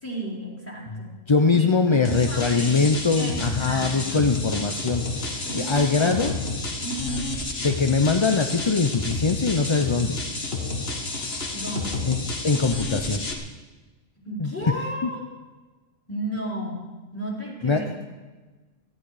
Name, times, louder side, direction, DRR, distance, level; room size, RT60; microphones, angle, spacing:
voice 1, 0.0-1.1 1.4-4.3 5.4-6.3 6.8-7.3 11.5-12.1 14.2-15.2 16.1-18.1, right 1 dB, 10° left, -3 dB, 4.4 m, -34 dB
voice 2, 1.3-6.3 7.6-10.2 12.1-12.2 12.4-13.3 14.4-14.7 15.0-15.1 17.6-17.8, left 4 dB, 30° left, 5 dB, 0.5 m, -22 dB
sound 1, 2.0-13.3, left 3 dB, 50° left, 1.8 m, -30 dB
18.0 x 14.0 x 4.9 m, 1.3 s
omnidirectional pair, 1.4 m